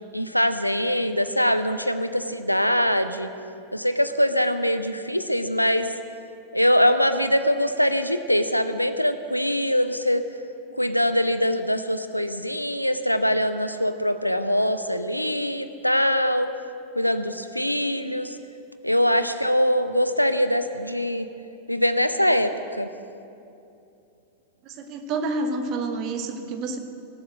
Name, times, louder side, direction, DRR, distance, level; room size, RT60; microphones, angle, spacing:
voice 1, 0.1-3.3 3.7-5.9 6.5-10.2 10.8-16.5 17.0-18.3 18.8-21.3 21.7-22.5 22.8-22.9, equal, 90° left, 11 dB, 0.6 m, -23 dB
voice 2, 24.6-26.8, right 3 dB, 40° right, 6 dB, 1.3 m, -29 dB
18.0 x 7.9 x 6.4 m, 2.6 s
figure-of-eight pair, 90°, 0 cm